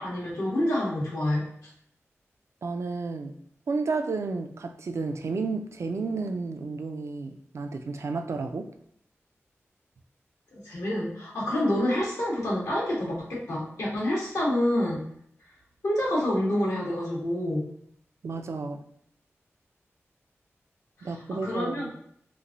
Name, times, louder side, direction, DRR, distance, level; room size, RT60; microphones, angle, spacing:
voice 1, 0.0-1.4 10.5-15.0 15.8-17.7 21.0-21.1 21.4-21.9, left 1 dB, 80° left, -5 dB, 1.2 m, -27 dB
voice 2, 2.6-3.4 3.7-8.7 18.2-18.8 21.0-21.9, right 4 dB, 65° right, 6 dB, 0.3 m, -32 dB
3.0 x 2.5 x 2.5 m, 0.68 s
cardioid pair, 55°, 5 cm